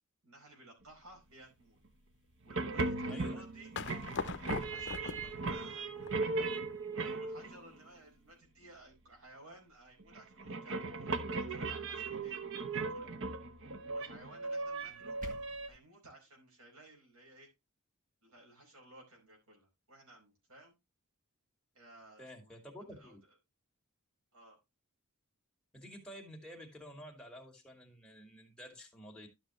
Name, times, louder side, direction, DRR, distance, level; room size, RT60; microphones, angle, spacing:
voice 1, 0.2-1.8 2.4-3.7 4.2-6.2 6.9-10.8 11.3-13.1 13.9-15.2 15.7-17.5 18.2-20.7 21.7-23.2 24.3-24.6, right 1 dB, 80° right, 4.8 m, -57 dB
sound 1, 2.4-7.8 10.0-15.7, right 3 dB, 60° right, 1.0 m, -38 dB
voice 2, 3.1-3.4 22.2-23.2 25.7-29.3, equal, 5° left, 2.3 m, -50 dB
sound 2, 3.8-6.8, left 5 dB, 55° left, 0.7 m, -42 dB
sound 3, 14.8-15.8, left 1 dB, 35° right, 1.6 m, -50 dB
12.5 x 6.3 x 3.1 m
head